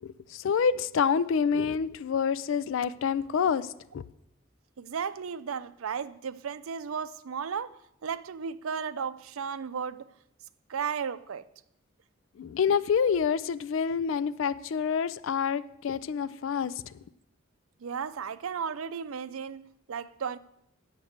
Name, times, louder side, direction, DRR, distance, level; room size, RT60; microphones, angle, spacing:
voice 1, 0.0-4.0 12.4-16.8, left 6 dB, 65° left, 0.4 m, -27 dB
voice 2, 4.8-10.1 10.7-11.5 17.8-20.4, right 6 dB, 80° right, 0.5 m, -35 dB
9.3 x 7.3 x 6.5 m
head